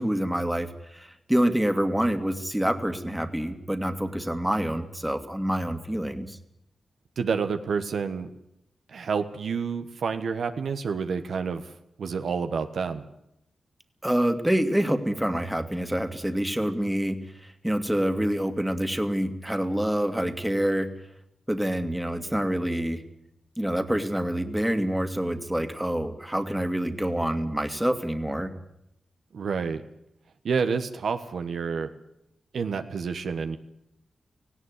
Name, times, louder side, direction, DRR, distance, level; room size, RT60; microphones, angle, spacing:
voice 1, 0.0-6.4 14.0-17.2 17.4-20.9 21.5-23.0 23.6-28.5, right 1 dB, 5° right, 8 dB, 2.3 m, -27 dB
voice 2, 7.2-8.3 8.9-11.7 12.0-13.0 29.3-29.8 30.4-31.9 32.5-33.6, right 5 dB, 80° right, 7 dB, 1.4 m, -29 dB
18.0 x 16.5 x 9.8 m, 0.80 s
cardioid pair, 55°, 0 cm